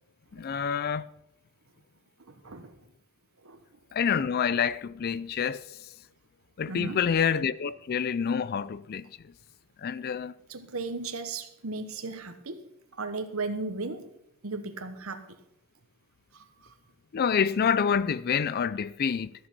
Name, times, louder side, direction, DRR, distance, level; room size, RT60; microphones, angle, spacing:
voice 1, 0.3-1.1 3.9-5.6 6.6-9.1 9.8-10.3 17.1-19.3, left 7 dB, 45° left, 0.4 m, -27 dB
voice 2, 2.3-2.7 3.4-3.6 6.7-7.0 10.5-12.7 13.0-14.1 14.4-15.3 16.3-16.8, right 3 dB, 65° right, 1.1 m, -36 dB
13.0 x 7.2 x 6.0 m
head